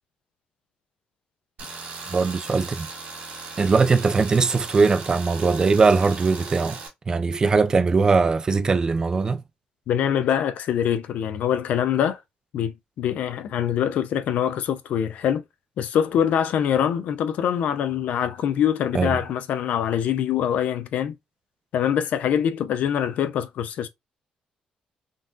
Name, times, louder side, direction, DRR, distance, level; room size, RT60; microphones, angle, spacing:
Tools, 1.6-6.9, right 4 dB, 70° right, 1.6 m, -38 dB
voice 1, 2.1-2.9 3.6-6.8 7.1-9.4 18.9-19.1, right 4 dB, 30° right, 0.4 m, -20 dB
voice 2, 9.9-12.2 12.5-15.4 15.8-21.2 21.7-23.9, left 9 dB, 70° left, 0.4 m, -24 dB
3.7 x 2.6 x 2.4 m
cardioid pair, 125°, 3 cm